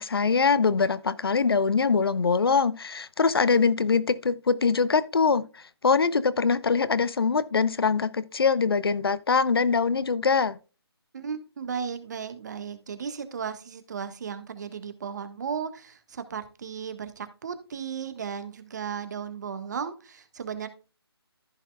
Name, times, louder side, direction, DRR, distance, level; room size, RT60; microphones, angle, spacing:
voice 1, 0.0-10.6, left 5 dB, 65° left, 0.8 m, -23 dB
voice 2, 11.1-20.7, right 7 dB, 45° right, 1.5 m, -35 dB
14.5 x 5.8 x 2.3 m
figure-of-eight pair, 150°, 14 cm